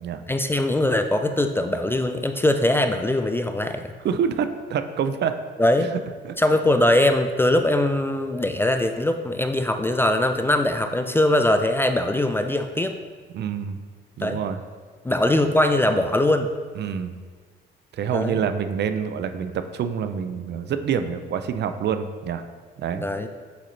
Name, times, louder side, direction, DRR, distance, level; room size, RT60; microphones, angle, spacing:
voice 1, 0.3-3.9 5.6-5.9 6.4-13.0 14.2-14.4 15.0-16.5 18.1-18.4 22.9-23.3, left 1 dB, 10° left, 7 dB, 0.3 m, -21 dB
voice 2, 4.0-5.4 5.8-5.9 6.2-6.4 13.3-13.8 14.2-14.6 16.8-17.2 17.9-22.4 22.8-23.0, right 7 dB, 60° right, 9 dB, 0.5 m, -27 dB
7.9 x 3.8 x 3.2 m, 1.5 s
cardioid pair, 90°, 20 cm